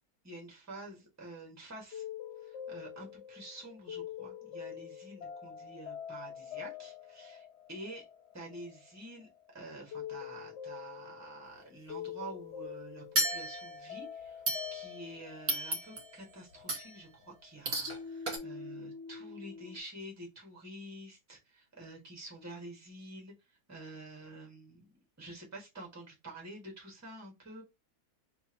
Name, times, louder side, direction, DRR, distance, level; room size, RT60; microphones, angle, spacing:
voice 1, 0.2-2.0 2.4-8.0 8.3-9.3 9.5-14.4 14.7-23.3 23.7-27.6, right 1 dB, 10° right, -1 dB, 1.5 m, -48 dB
sound 1, 1.9-17.5 17.9-19.8, left 8 dB, 65° left, 0.8 m, -45 dB
sound 2, 13.2-13.9 14.5-15.1 15.5-16.2 16.7-17.0 17.7-18.0 18.3-18.4, right 1 dB, 40° right, 1.8 m, -34 dB
3.5 x 2.8 x 4.3 m, 0.23 s
omnidirectional pair, 1.6 m